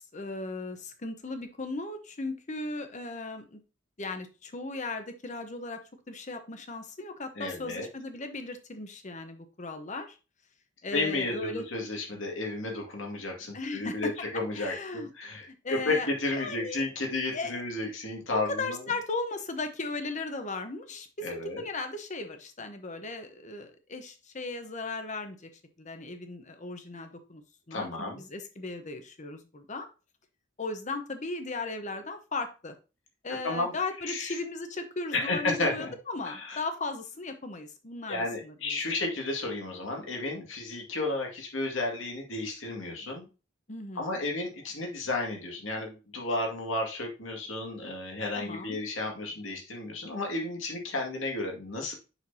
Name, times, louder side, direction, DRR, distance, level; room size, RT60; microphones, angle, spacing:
voice 1, 0.0-3.6 4.0-5.8 6.1-10.2 10.8-11.6 13.5-14.1 14.5-15.1 15.6-16.1 16.4-16.8 17.3-17.6 18.3-25.5 25.8-27.4 27.7-29.9 30.6-32.7 33.2-38.8 43.7-44.2 48.3-48.8, left 3 dB, 40° left, 7 dB, 1.0 m, -37 dB
voice 2, 7.4-7.9 10.9-18.8 21.2-21.6 27.7-28.2 33.4-33.7 34.0-34.4 35.1-35.9 36.2-36.6 38.1-43.3 44.0-51.9, left 2 dB, 80° left, 1 dB, 2.2 m, -32 dB
7.1 x 5.9 x 2.8 m, 0.31 s
head